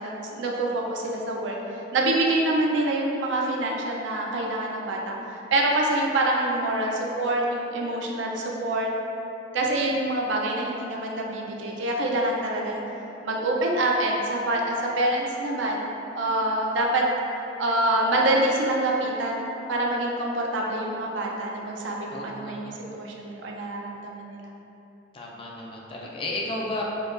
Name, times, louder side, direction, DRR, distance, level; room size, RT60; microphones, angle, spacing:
voice 1, 0.0-1.6 1.9-5.1 5.5-8.9 9.5-12.8 13.2-15.9 16.1-17.0 17.6-24.5, right 1 dB, 75° right, -1 dB, 0.4 m, -26 dB
voice 2, 22.1-22.7 25.1-26.8, left 2 dB, 30° left, -3 dB, 0.3 m, -33 dB
4.5 x 2.3 x 2.5 m, 2.9 s
head